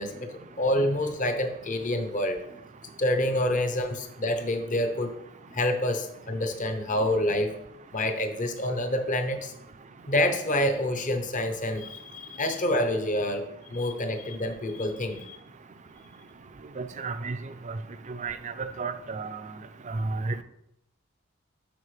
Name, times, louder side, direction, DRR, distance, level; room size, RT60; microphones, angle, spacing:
voice 1, 0.0-2.6 3.0-5.1 5.5-7.5 7.9-9.5 10.1-15.4, left 1 dB, 40° left, 6 dB, 0.8 m, -27 dB
voice 2, 16.8-17.4 17.7-17.8 18.2-18.4 18.8-19.4 19.9-20.4, right 3 dB, 35° right, 11 dB, 0.5 m, -32 dB
12.0 x 4.4 x 3.3 m, 0.77 s
head